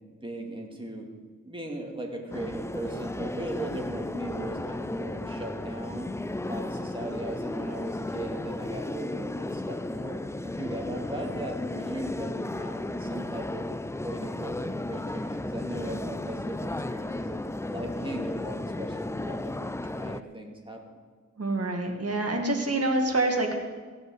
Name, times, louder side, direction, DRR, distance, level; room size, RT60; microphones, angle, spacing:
voice 1, 0.2-1.1 1.4-6.1 6.5-10.2 10.4-13.6 14.0-17.4 17.7-20.9, right 1 dB, 15° right, 0 dB, 2.3 m, -38 dB
sound 1, 2.3-20.2, left 2 dB, 10° left, 0.3 m, -34 dB
voice 2, 21.4-23.6, right 2 dB, 50° right, 3 dB, 1.9 m, -26 dB
16.0 x 7.8 x 7.9 m, 1.5 s
wide cardioid pair, 115°, 31 cm